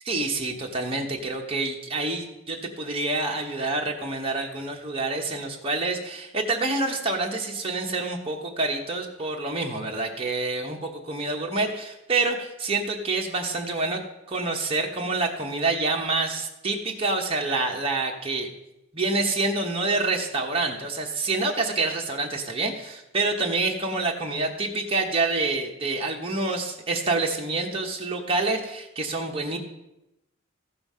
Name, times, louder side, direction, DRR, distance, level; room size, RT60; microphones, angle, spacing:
voice 1, 0.1-14.0 14.3-18.5 18.9-29.6, right 3 dB, 25° right, 0 dB, 1.2 m, -27 dB
14.5 x 5.6 x 5.5 m, 0.90 s
head